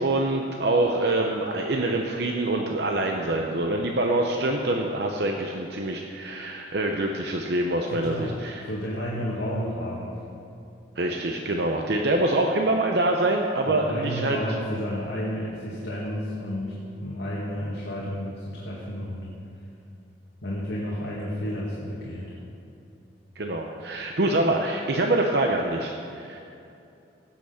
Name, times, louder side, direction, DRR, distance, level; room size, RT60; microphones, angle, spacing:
voice 1, 0.0-8.6 11.0-14.4 23.4-26.4, right 2 dB, 60° right, 2 dB, 0.8 m, -25 dB
voice 2, 7.9-8.3 8.6-10.1 13.7-16.7 17.0-19.3 20.4-22.3, equal, 70° left, -6 dB, 2.0 m, -31 dB
17.0 x 6.0 x 7.1 m, 2.7 s
head